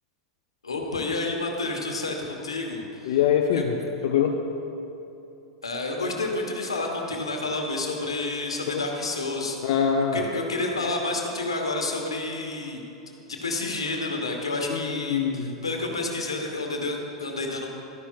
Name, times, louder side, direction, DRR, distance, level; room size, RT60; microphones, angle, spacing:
voice 1, 0.6-3.2 3.5-3.6 5.6-9.6 10.1-12.8 13.3-17.7, left 2 dB, 90° left, 2 dB, 1.1 m, -29 dB
voice 2, 3.1-3.7 4.0-4.4 8.7-8.8 9.6-10.3 14.7-15.5, left 8 dB, 60° left, 2 dB, 0.6 m, -23 dB
12.0 x 10.0 x 2.3 m, 2.8 s
hypercardioid pair, 90°, 3 cm